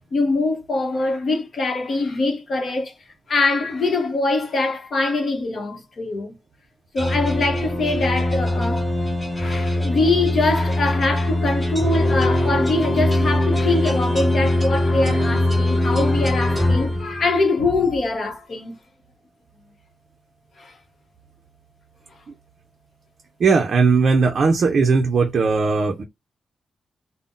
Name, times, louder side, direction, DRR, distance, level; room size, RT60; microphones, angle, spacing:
voice 1, 0.1-2.9 3.3-6.4 6.9-8.9 9.3-18.8 20.6-20.7, left 3 dB, 45° left, 0.8 m, -23 dB
sound 1, 7.0-17.6, left 1 dB, ahead, 0.6 m, -22 dB
voice 2, 23.4-26.0, right 4 dB, 50° right, 0.4 m, -18 dB
2.5 x 2.0 x 3.6 m
wide cardioid pair, 160°, 0 cm